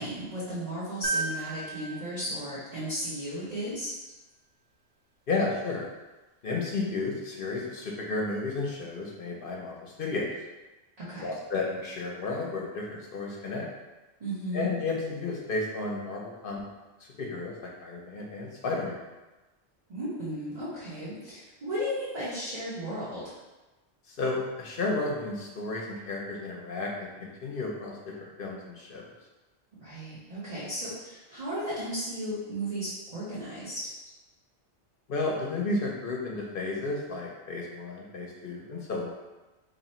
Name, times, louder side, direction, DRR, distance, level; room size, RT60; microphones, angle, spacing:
voice 1, 0.0-3.9 11.0-11.3 14.2-14.7 19.9-23.4 29.8-33.9, equal, 35° right, -10 dB, 0.8 m, -35 dB
sound 1, 1.0-3.4 5.4-5.5, right 3 dB, 80° right, 1.1 m, -35 dB
voice 2, 5.3-5.9 6.4-10.3 11.2-13.7 14.5-16.6 17.0-19.1 24.1-29.0 35.1-39.1, left 3 dB, 55° left, -1 dB, 0.7 m, -32 dB
3.0 x 2.9 x 4.1 m, 1.1 s
omnidirectional pair, 1.3 m